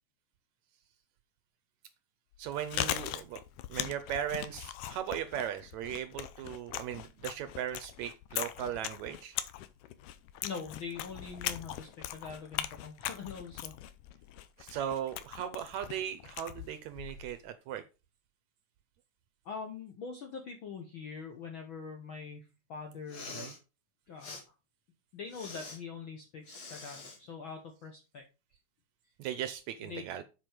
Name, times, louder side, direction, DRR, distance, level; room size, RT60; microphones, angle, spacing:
Chewing mastication, 2.3-17.4, left 13 dB, 85° left, 2.2 m, -40 dB
voice 1, 2.4-3.4 3.7-9.4 14.6-17.8 23.3-23.5 29.2-30.2, right 10 dB, 75° right, 11 dB, 1.8 m, -38 dB
voice 2, 10.4-13.7 19.4-23.5 24.1-24.4 25.1-28.2 29.8-30.0, left 5 dB, 65° left, 2 dB, 1.2 m, -43 dB
Respiratory sounds, 23.0-23.6 24.2-24.4 25.3-25.8 26.5-27.2, left 3 dB, 40° left, 2.9 m, -45 dB
7.6 x 5.1 x 5.0 m, 0.30 s
omnidirectional pair, 3.7 m